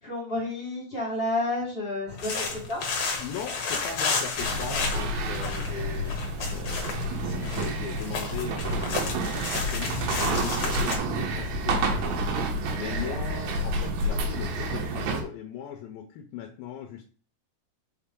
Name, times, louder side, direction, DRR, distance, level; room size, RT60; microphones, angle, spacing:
voice 1, 0.0-2.9, left 2 dB, 45° left, -5 dB, 0.7 m, -30 dB
sound 1, 2.1-11.0, left 4 dB, 60° left, 1.9 m, -32 dB
voice 2, 3.2-6.2 6.5-12.4 12.7-17.0, left 8 dB, 80° left, 3 dB, 2.4 m, -39 dB
sound 2, 4.4-15.2, right 1 dB, 85° right, 3.1 m, -29 dB
5.8 x 5.0 x 3.7 m, 0.41 s
omnidirectional pair, 4.6 m